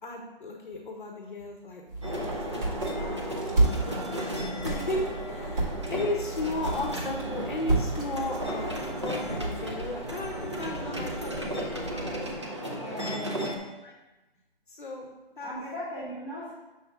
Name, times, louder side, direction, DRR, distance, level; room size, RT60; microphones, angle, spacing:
voice 1, 0.0-4.4 4.6-13.5 13.8-13.9 14.7-15.1 15.4-15.6, left 2 dB, 55° left, 1 dB, 0.9 m, -36 dB
sound 1, 1.9-12.4, right 2 dB, 55° right, 2.1 m, -32 dB
sound 2, 2.0-13.6, equal, 30° right, 0.5 m, -35 dB
voice 2, 12.6-13.7 15.4-16.5, equal, 5° right, -13 dB, 1.1 m, -38 dB
7.2 x 6.4 x 2.3 m, 1.1 s
hypercardioid pair, 180°, 30 cm